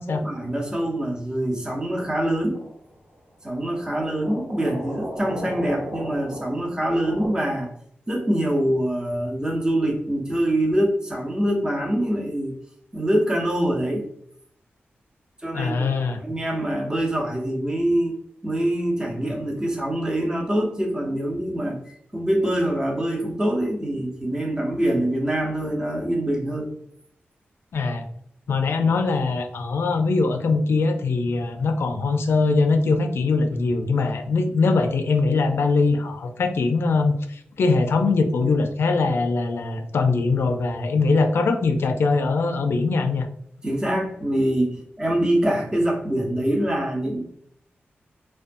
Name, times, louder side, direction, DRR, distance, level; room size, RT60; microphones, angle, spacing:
voice 1, 0.1-2.6 3.4-7.7 8.1-12.5 12.9-14.1 15.4-18.1 18.4-26.7 43.6-47.2, right 1 dB, 20° right, -2 dB, 0.7 m, -24 dB
sound 1, 2.5-2.9 4.2-7.3, equal, 85° right, 1.2 m, -34 dB
voice 2, 15.5-16.2 27.7-28.0 28.5-43.3, left 3 dB, 75° left, 6 dB, 0.4 m, -22 dB
2.4 x 2.2 x 2.5 m, 0.68 s
cardioid pair, 60°, 4 cm